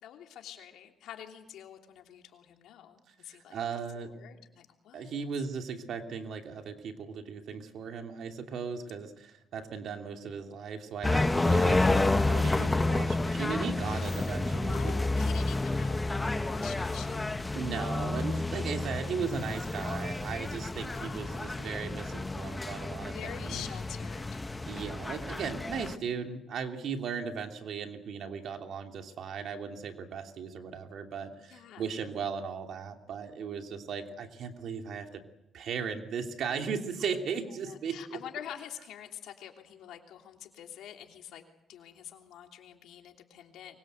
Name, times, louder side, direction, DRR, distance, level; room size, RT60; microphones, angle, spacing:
voice 1, 0.0-3.6 3.9-5.2 13.8-14.4 14.7-17.4 20.9-21.4 23.1-24.4 31.5-31.9 37.6-41.4 41.7-43.8, left 10 dB, 85° left, 3 dB, 3.1 m, -46 dB
voice 2, 3.5-4.1 4.9-14.9 17.5-23.6 24.7-35.2 35.5-38.2, right 6 dB, 70° right, 4 dB, 2.8 m, -37 dB
sound 1, 11.0-26.0, left 2 dB, 15° left, 1.1 m, -30 dB
24.0 x 22.0 x 8.1 m, 0.88 s
cardioid pair, 90°, 0 cm